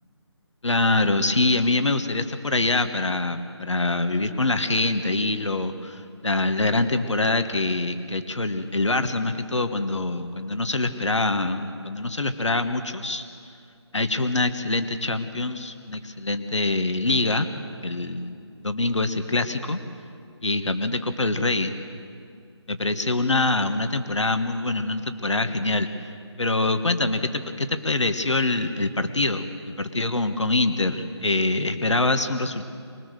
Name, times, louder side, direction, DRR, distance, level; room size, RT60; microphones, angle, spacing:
voice 1, 0.6-13.2 13.9-17.5 17.8-19.8 20.4-21.7 22.7-26.1 26.4-32.6, left 2 dB, 90° left, 8 dB, 1.5 m, -24 dB
25.0 x 20.0 x 6.6 m, 2.4 s
figure-of-eight pair, 155°, 15 cm